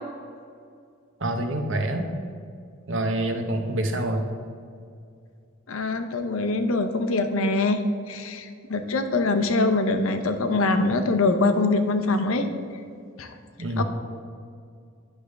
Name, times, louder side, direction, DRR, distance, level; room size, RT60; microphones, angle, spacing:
voice 1, 1.2-2.1 2.9-4.3 13.6-13.8, right 1 dB, 65° right, 5 dB, 0.9 m, -26 dB
voice 2, 5.7-7.8 8.1-12.5 13.2-13.3 13.8-13.9, left 3 dB, 85° left, 7 dB, 0.7 m, -23 dB
9.8 x 3.5 x 6.4 m, 2.2 s
head